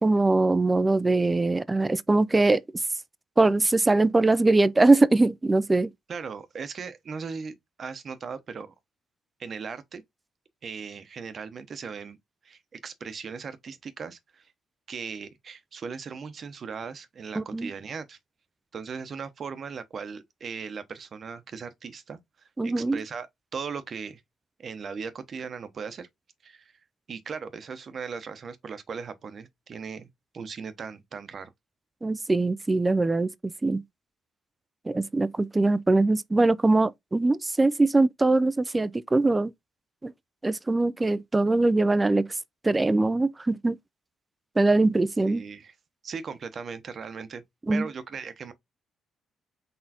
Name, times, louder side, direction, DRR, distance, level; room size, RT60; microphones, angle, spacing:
voice 1, 0.0-2.6 3.4-5.9 17.4-17.7 22.6-23.0 32.0-33.3 33.6-33.8 34.9-39.5 40.0-40.1 40.4-42.3 42.6-43.8 44.6-45.4 47.7-47.9, right 2 dB, 20° right, 0.4 m, -22 dB
voice 2, 6.1-8.7 9.4-10.0 10.6-12.2 12.4-14.5 14.9-18.2 18.7-22.2 22.6-24.2 24.6-26.1 26.4-26.7 27.1-30.1 30.3-31.5 45.3-45.7 46.0-47.4 47.7-48.5, right 5 dB, 50° right, 0.8 m, -38 dB
4.1 x 3.7 x 2.8 m
cardioid pair, 90°, 0 cm